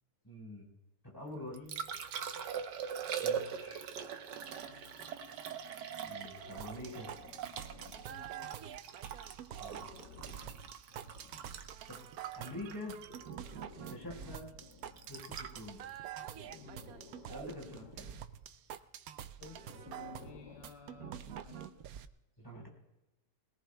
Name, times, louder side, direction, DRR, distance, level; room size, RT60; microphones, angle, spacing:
voice 1, 0.2-0.7 1.0-2.0 3.2-3.9 6.1-7.1 9.4-9.9 11.9-12.0 12.4-12.9 13.9-14.5 15.1-15.8 17.3-18.1 22.4-22.7, left 1 dB, 10° left, -1 dB, 4.1 m, -46 dB
Liquid, 1.3-17.4 20.2-20.3, right 7 dB, 90° right, 1.5 m, -43 dB
voice 2, 4.7-5.3 8.0-8.8 14.2-14.4 16.5-16.9 19.4-21.9, left 4 dB, 55° left, 5 dB, 0.7 m, -55 dB
Breathing, 6.2-8.7 9.4-11.8 12.9-15.7 16.3-18.5 19.5-21.8, left 5 dB, 90° left, 1.6 m, -57 dB
sound 1, 6.6-22.1, right 10 dB, 70° right, 1.0 m, -47 dB
21.0 x 18.0 x 2.2 m, 0.99 s
omnidirectional pair, 1.8 m